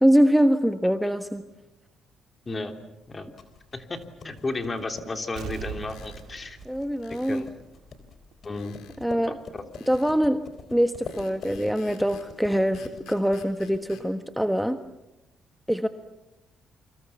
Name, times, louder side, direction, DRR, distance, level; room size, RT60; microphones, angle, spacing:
voice 1, 0.0-1.4 6.6-7.4 9.0-9.4 9.9-14.8 15.7-15.9, equal, ahead, 8 dB, 1.3 m, -23 dB
sound 1, 3.1-14.1, left 4 dB, 55° left, 3.9 m, -46 dB
voice 2, 4.2-6.6 7.3-7.5 8.4-8.8 9.3-9.6, left 3 dB, 30° left, 6 dB, 3.3 m, -33 dB
Explosion, 5.4-8.0 8.3-8.4, right 9 dB, 80° right, 2.3 m, -40 dB
sound 2, 5.9-6.3 7.0-7.5 8.5-9.0 9.7-10.2 11.1-12.3 12.7-14.1, left 6 dB, 90° left, 4.1 m, -50 dB
29.0 x 25.5 x 7.2 m, 0.94 s
cardioid pair, 90°, 0 cm